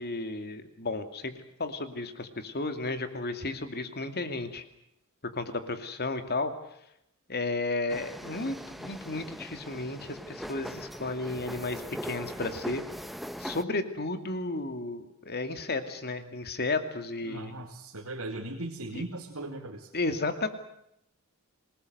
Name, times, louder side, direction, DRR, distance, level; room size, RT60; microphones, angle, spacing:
voice 1, 0.0-1.3 1.6-4.6 5.3-6.5 7.3-12.8 13.4-17.5 18.9-19.0 19.9-20.5, left 2 dB, 45° left, 9 dB, 2.6 m, -33 dB
sound 1, 7.9-13.6, equal, ahead, 1.0 m, -40 dB
voice 2, 17.2-19.9, right 2 dB, 75° right, -1 dB, 2.8 m, -38 dB
26.5 x 19.5 x 8.0 m, 0.78 s
head